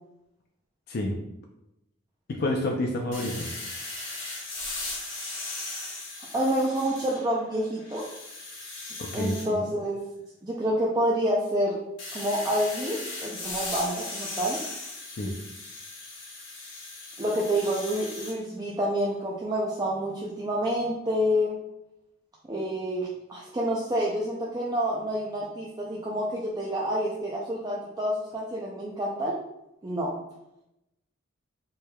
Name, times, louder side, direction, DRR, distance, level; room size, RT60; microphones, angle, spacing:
voice 1, 0.9-1.2 2.3-3.5 9.0-9.7 15.2-15.3, left 1 dB, 50° left, 1 dB, 0.4 m, -29 dB
sound 1, 3.1-7.4 7.8-9.5 12.0-18.4, left 2 dB, 75° left, 1.2 m, -38 dB
voice 2, 6.3-8.0 9.1-10.0 10.4-11.8 12.1-14.6 17.2-21.6 22.5-29.4 29.8-30.2, equal, 20° right, -5 dB, 0.4 m, -28 dB
4.6 x 3.2 x 2.2 m, 0.87 s
head